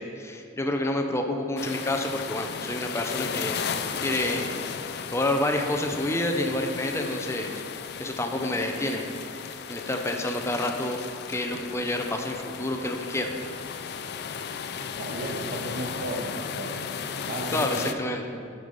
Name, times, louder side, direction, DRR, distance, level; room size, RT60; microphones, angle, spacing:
voice 1, 0.0-3.7 4.0-4.6 5.1-7.5 8.0-9.1 9.5-11.0 11.3-13.3 17.5-18.2, left 1 dB, 15° left, 4 dB, 0.6 m, -28 dB
sound 1, 1.6-17.9, left 7 dB, 60° left, 0.4 m, -35 dB
voice 2, 15.0-16.8 17.2-18.0, right 1 dB, 50° right, 0 dB, 1.3 m, -34 dB
8.2 x 5.5 x 5.3 m, 2.4 s
head